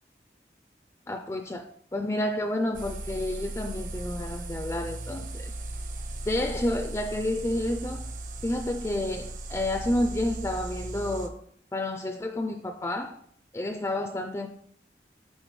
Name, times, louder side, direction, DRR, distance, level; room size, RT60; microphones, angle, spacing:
voice 1, 1.1-1.6 1.9-5.5 6.3-8.1 8.4-11.4 11.7-13.2 13.5-14.5, left 1 dB, 15° left, 0.3 m, -30 dB
sound 1, 2.7-11.3, right 2 dB, 50° right, 0.8 m, -37 dB
11.5 x 3.9 x 3.1 m
head